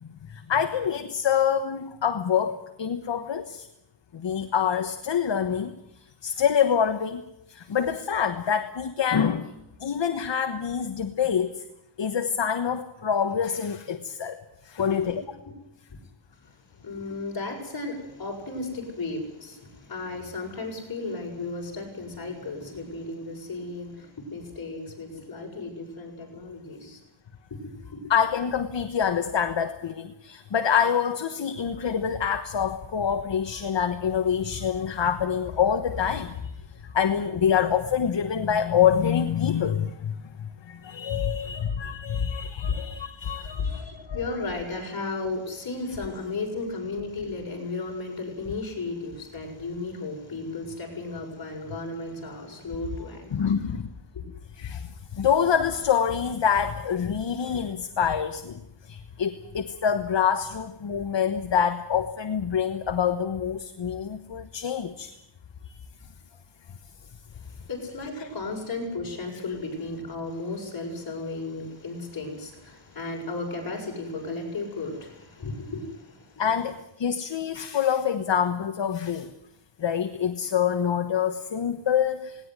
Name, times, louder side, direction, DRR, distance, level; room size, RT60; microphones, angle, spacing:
voice 1, 0.0-3.7 4.1-7.2 7.5-11.6 12.0-15.2 28.1-44.2 53.3-53.9 54.6-65.2 65.6-65.8 76.4-79.3 79.8-82.5, left 8 dB, 65° left, 7 dB, 1.3 m, -26 dB
voice 2, 14.8-15.2 15.4-15.5 16.4-27.0 27.5-28.0 42.6-42.8 43.4-53.5 54.1-54.2 67.3-76.4, left 3 dB, 50° left, 0 dB, 7.0 m, -35 dB
18.5 x 18.5 x 9.7 m, 0.83 s
wide cardioid pair, 140°, 47 cm